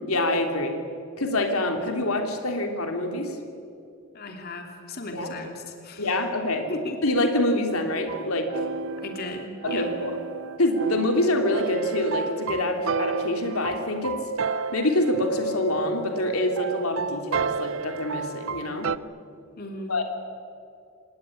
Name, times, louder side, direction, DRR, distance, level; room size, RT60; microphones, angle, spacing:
voice 1, 0.1-0.8 1.2-3.4 5.1-5.3 6.0-6.7 7.0-8.5 9.6-10.1 10.6-14.2 14.7-18.9 19.9-20.0, left 1 dB, 85° left, 4 dB, 3.2 m, -25 dB
voice 2, 4.1-6.2 6.7-7.0 9.0-9.9 19.6-20.0, left 2 dB, 45° left, 3 dB, 2.9 m, -36 dB
sound 1, 8.1-19.0, right 5 dB, 65° right, 0.7 m, -32 dB
27.0 x 19.0 x 10.0 m, 2.5 s
head